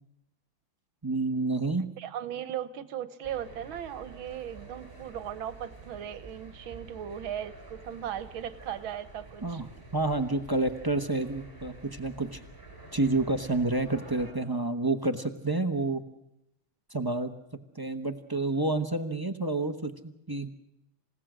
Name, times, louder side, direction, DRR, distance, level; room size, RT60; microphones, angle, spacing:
voice 1, 1.0-1.9 9.4-12.4 12.9-16.0 16.9-17.3 17.7-20.5, right 2 dB, 15° right, 6 dB, 0.7 m, -29 dB
voice 2, 2.0-9.6, right 10 dB, 75° right, 14 dB, 1.8 m, -37 dB
sound 1, 3.2-14.3, right 3 dB, 10° left, 8.1 m, -49 dB
28.5 x 17.0 x 6.3 m, 0.82 s
omnidirectional pair, 2.3 m